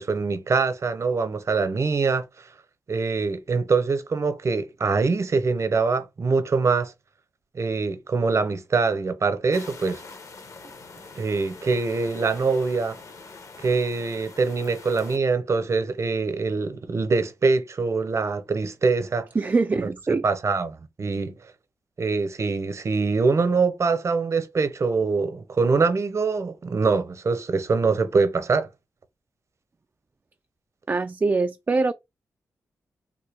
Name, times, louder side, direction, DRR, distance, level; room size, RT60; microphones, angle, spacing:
voice 1, 0.0-2.2 2.9-6.9 7.5-10.0 11.1-13.0 13.6-19.3 20.2-21.3 22.0-28.7, right 4 dB, 50° right, 0.7 m, -24 dB
sound 1, 9.5-15.2, left 4 dB, 55° left, 1.0 m, -44 dB
voice 2, 19.4-20.3 30.9-31.9, right 3 dB, 30° right, 0.3 m, -23 dB
3.6 x 2.2 x 3.4 m
cardioid pair, 65°, 6 cm